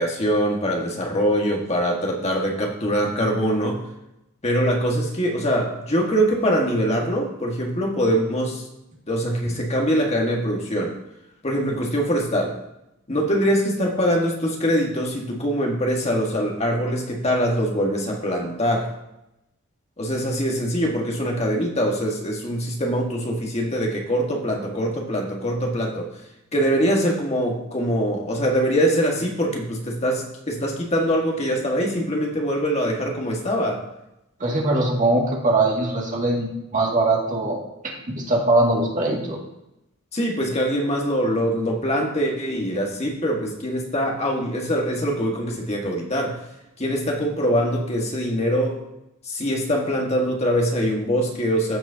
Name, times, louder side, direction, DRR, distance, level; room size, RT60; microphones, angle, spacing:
voice 1, 0.0-3.8 4.4-8.7 9.1-11.0 11.4-12.6 13.1-18.9 20.0-26.2 26.5-33.8 40.1-46.4 46.8-48.8 49.2-51.8, equal, 30° left, 0 dB, 1.6 m, -23 dB
voice 2, 34.4-37.6 37.8-39.4, right 2 dB, 40° right, -2 dB, 2.2 m, -21 dB
15.0 x 6.1 x 2.8 m, 0.90 s
head